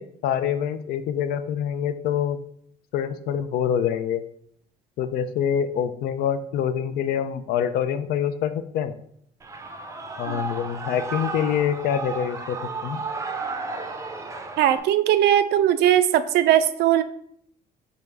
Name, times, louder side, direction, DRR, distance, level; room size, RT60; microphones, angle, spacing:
voice 1, 0.0-2.4 2.9-4.2 5.0-8.9 10.2-12.6 12.8-13.0, left 8 dB, 70° left, 12 dB, 0.4 m, -25 dB
Shout / Cheering, 9.4-14.8, right 4 dB, 20° right, 0.5 m, -33 dB
voice 2, 14.6-17.0, right 11 dB, 75° right, 12 dB, 0.4 m, -19 dB
3.9 x 3.5 x 3.4 m, 0.69 s
cardioid pair, 110°, 17 cm